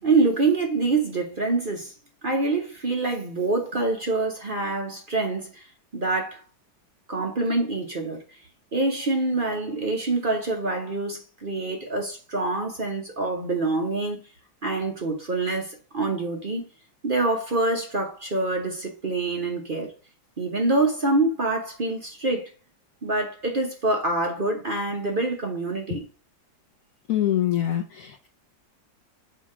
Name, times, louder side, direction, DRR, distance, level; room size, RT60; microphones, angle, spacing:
voice 1, 0.0-1.9 2.2-5.7 5.9-6.4 7.1-8.2 8.7-14.2 14.6-16.7 17.0-19.9 20.4-22.5 23.0-26.0, right 2 dB, 40° right, 0.7 m, -26 dB
voice 2, 27.1-28.3, left 12 dB, 70° left, 0.8 m, -25 dB
7.0 x 2.8 x 4.8 m
omnidirectional pair, 2.0 m